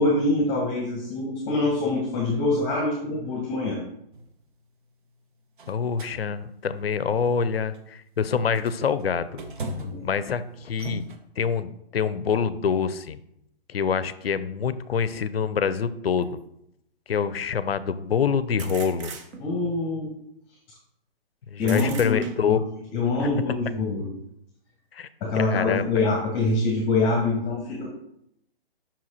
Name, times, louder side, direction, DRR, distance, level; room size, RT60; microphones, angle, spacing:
voice 1, 0.0-3.8 9.8-10.1 19.4-20.1 21.6-22.6 22.9-24.1 25.2-27.9, left 2 dB, 20° left, -1 dB, 1.1 m, -25 dB
sound 1, 4.1-4.3 5.6-6.2 6.8-7.0 7.7-7.9 8.3-10.1 10.7-11.2, right 1 dB, 55° right, 1.0 m, -36 dB
voice 2, 5.7-9.4 10.0-11.1 11.4-13.2 13.7-16.4 17.1-19.1 21.5-22.6 23.2-23.3 24.9-25.1 25.4-26.1, left 6 dB, 75° left, 15 dB, 0.5 m, -26 dB
sound 2, 16.2-16.3 18.6-19.7 21.6-22.7, right 5 dB, 30° right, 0.7 m, -40 dB
5.8 x 4.7 x 4.2 m, 0.77 s
figure-of-eight pair, 130°, 30 cm